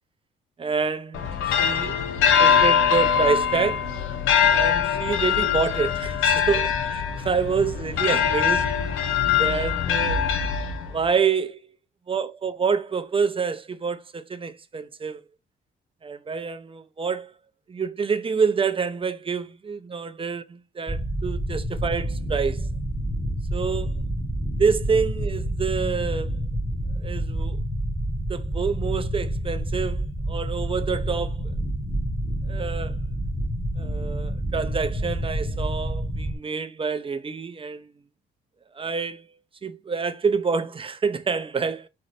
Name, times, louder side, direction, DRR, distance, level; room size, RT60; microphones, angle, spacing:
voice 1, 0.6-1.9 2.3-4.0 4.5-8.7 9.4-10.4 10.9-11.7 12.1-15.2 16.0-17.3 17.7-22.7 23.5-24.0 24.6-26.3 27.0-27.6 28.3-31.5 32.5-33.0 33.8-37.9 38.7-39.3 39.6-41.9, right 5 dB, 25° right, 0.6 m, -27 dB
sound 1, 1.1-11.1, left 7 dB, 90° left, 0.8 m, -22 dB
sound 2, 20.9-36.3, right 1 dB, ahead, 1.1 m, -28 dB
3.9 x 3.3 x 4.0 m
cardioid pair, 90°, 20 cm